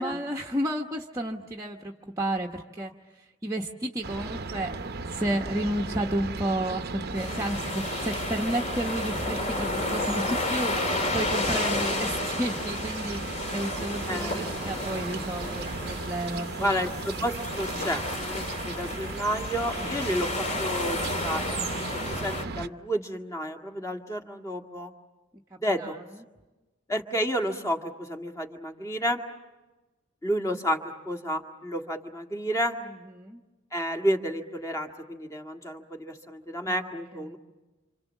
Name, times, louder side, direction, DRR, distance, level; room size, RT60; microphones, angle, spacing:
voice 1, 0.0-4.7 5.1-16.8 19.8-20.0 25.5-26.0 33.2-33.4 36.7-37.4, right 1 dB, 15° right, 0 dB, 1.0 m, -32 dB
sound 1, 4.0-22.7, right 3 dB, 45° right, 0.8 m, -36 dB
sound 2, 7.2-22.4, left 2 dB, 35° left, 2.5 m, -32 dB
voice 2, 16.6-20.3 20.6-21.6 22.1-24.9 25.6-25.9 26.9-29.2 30.2-30.8 31.1-32.8 33.7-37.4, equal, 15° left, 4 dB, 1.8 m, -30 dB
29.0 x 27.0 x 7.3 m, 1.2 s
head